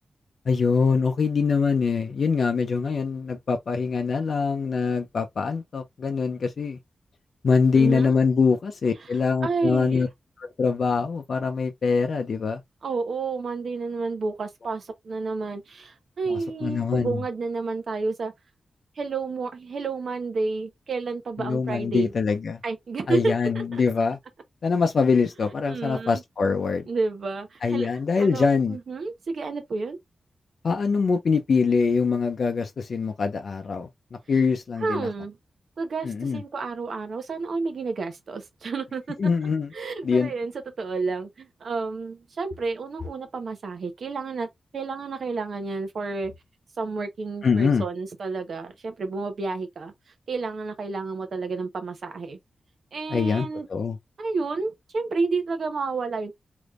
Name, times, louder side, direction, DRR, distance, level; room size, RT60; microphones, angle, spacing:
voice 1, 0.5-6.8 7.4-10.1 10.4-12.6 16.3-17.2 21.4-22.6 23.1-24.2 24.6-26.8 27.6-28.8 30.6-35.1 36.0-36.4 39.2-39.7 40.0-40.3 47.4-47.8 53.1-54.0, left 5 dB, 65° left, 0.5 m, -24 dB
voice 2, 7.7-8.2 9.0-9.1 9.4-10.0 12.8-18.3 19.0-22.1 22.6-23.8 25.7-26.2 26.8-27.9 28.2-30.0 34.8-35.4 35.8-39.2 39.7-40.5 40.8-44.5 44.7-46.3 46.8-49.9 50.3-52.4 52.9-53.7 54.2-56.3, right 4 dB, 70° right, 0.9 m, -30 dB
3.4 x 3.0 x 2.4 m
wide cardioid pair, 110°, 0 cm